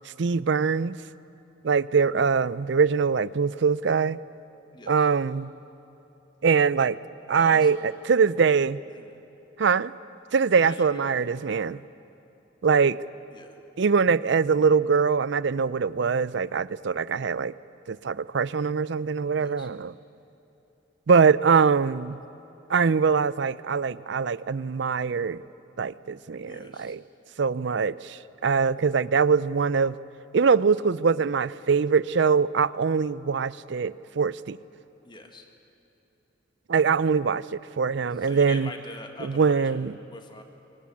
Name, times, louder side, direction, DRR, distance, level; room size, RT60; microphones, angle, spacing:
voice 1, 0.2-1.0 1.6-4.2 4.9-5.5 6.4-7.0 7.3-8.8 9.6-9.9 10.3-11.8 12.6-13.0 13.8-17.5 17.9-19.9 21.1-22.2 22.7-25.4 25.8-27.0 27.4-29.9 30.3-34.6 36.7-38.7 39.2-39.9, right 5 dB, 65° right, 18 dB, 0.5 m, -23 dB
voice 2, 4.7-5.1 7.3-7.7 8.9-9.1 10.6-11.2 13.3-13.6 19.4-19.7 26.4-27.0 32.9-33.0 35.0-35.5 38.2-40.4, left 2 dB, 25° left, 5 dB, 1.8 m, -44 dB
23.0 x 18.5 x 8.6 m, 3.0 s
head